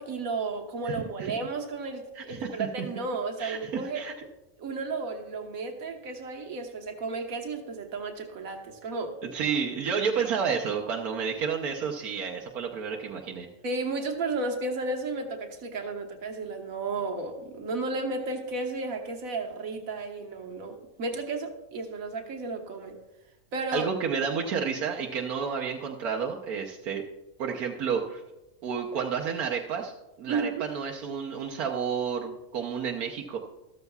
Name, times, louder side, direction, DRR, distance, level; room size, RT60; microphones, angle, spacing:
voice 1, 0.0-4.0 4.6-9.1 13.6-22.9 23.5-23.9 30.3-30.7, right 3 dB, 70° right, 3 dB, 1.6 m, -33 dB
voice 2, 0.9-1.3 2.1-2.5 3.4-4.1 9.3-13.5 23.7-27.0 27.4-28.2 28.6-29.9 30.2-33.4, right 6 dB, 85° right, 0 dB, 1.4 m, -30 dB
13.5 x 13.5 x 2.3 m, 0.98 s
omnidirectional pair, 1.5 m